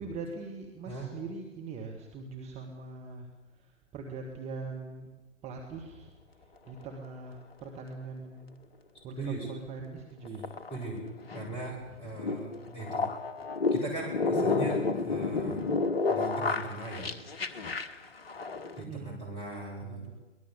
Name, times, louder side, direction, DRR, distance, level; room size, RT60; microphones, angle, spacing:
voice 1, 0.0-5.1 5.4-8.5 9.0-10.5 12.7-12.9 18.8-19.1 19.8-20.1, right 4 dB, 15° right, 2 dB, 2.3 m, -42 dB
sound 1, 5.7-6.1 10.0-18.8, left 4 dB, 50° left, 1.6 m, -31 dB
voice 2, 9.2-9.5 10.7-11.0 11.3-13.1 13.7-15.7 16.1-17.1 18.8-20.1, right 2 dB, 15° left, 0 dB, 7.2 m, -39 dB
23.5 x 20.0 x 8.4 m, 1.1 s
figure-of-eight pair, 125°, 37 cm